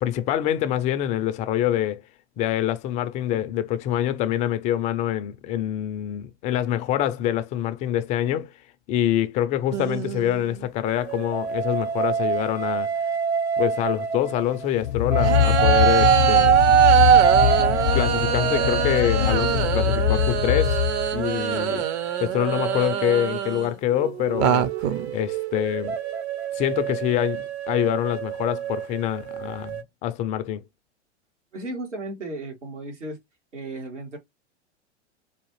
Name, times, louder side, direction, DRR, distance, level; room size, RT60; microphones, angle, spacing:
voice 1, 0.0-2.0 2.4-8.5 8.9-12.9 13.6-16.6 17.9-20.8 21.1-21.9 22.2-24.7 25.1-25.9 26.5-29.8 30.0-30.6, left 11 dB, 20° left, 0.3 m, -25 dB
sound 1, 9.7-10.7 11.5-11.6 15.2-23.8 24.3-25.2, right 10 dB, 35° right, 0.6 m, -26 dB
sound 2, 10.8-14.7 15.1-23.2 23.9-29.8, right 9 dB, 65° right, 0.8 m, -24 dB
sound 3, 14.8-21.3, left 12 dB, 70° left, 0.6 m, -23 dB
voice 2, 31.5-33.2 33.5-34.2, right 2 dB, 85° right, 1.9 m, -34 dB
4.7 x 2.4 x 3.1 m
figure-of-eight pair, 100°, 35 cm